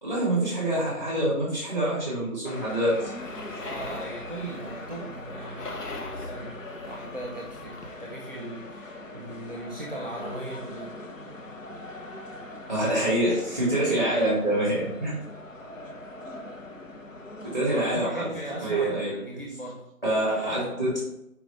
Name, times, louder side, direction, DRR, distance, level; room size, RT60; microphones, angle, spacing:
voice 1, 0.0-3.1 12.7-15.1 17.4-18.3 18.6-19.1 20.0-21.0, right 1 dB, 10° left, -7 dB, 2.2 m, -26 dB
sound 1, 2.5-18.1, left 1 dB, 55° left, 1.0 m, -41 dB
sound 2, 3.1-8.0, left 2 dB, 85° left, 1.4 m, -41 dB
voice 2, 3.6-10.9 17.7-19.9, right 1 dB, 30° right, -2 dB, 0.9 m, -39 dB
4.9 x 4.6 x 5.0 m, 0.85 s
figure-of-eight pair, 175°, 46 cm